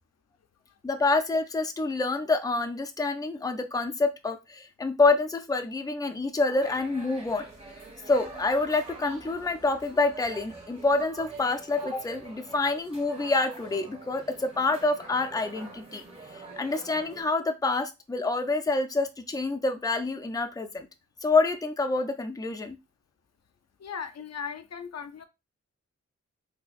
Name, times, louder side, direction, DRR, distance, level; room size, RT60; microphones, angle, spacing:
voice 1, 0.8-7.4 8.1-16.0 16.3-20.9 21.2-22.8, left 3 dB, 15° left, 0.5 m, -27 dB
sound 1, 6.6-17.2, right 3 dB, 20° right, 2.0 m, -45 dB
voice 2, 23.8-25.2, left 6 dB, 60° left, 0.5 m, -37 dB
3.9 x 2.9 x 2.4 m
wide cardioid pair, 115°, 29 cm